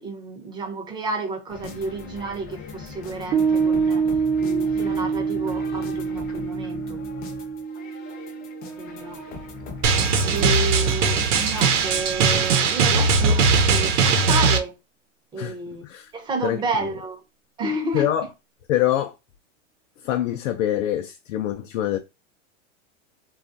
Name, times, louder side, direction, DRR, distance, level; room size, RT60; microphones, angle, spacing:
voice 1, 0.0-4.0 4.4-7.0 8.8-9.2 10.2-14.8 15.3-15.8 16.1-17.2 17.6-18.1, right 3 dB, 10° right, 0.6 m, -31 dB
sound 1, 1.5-12.5, left 4 dB, 25° left, 0.5 m, -39 dB
Piano, 3.3-10.1, right 6 dB, 50° right, 0.9 m, -26 dB
Drum, 9.8-14.6, right 4 dB, 75° right, 0.8 m, -19 dB
voice 2, 10.7-11.1 15.4-16.1 16.4-16.6 17.9-18.3 18.7-19.2 20.0-22.0, left 12 dB, 85° left, 0.5 m, -25 dB
3.2 x 2.4 x 2.5 m
supercardioid pair, 140°, 37 cm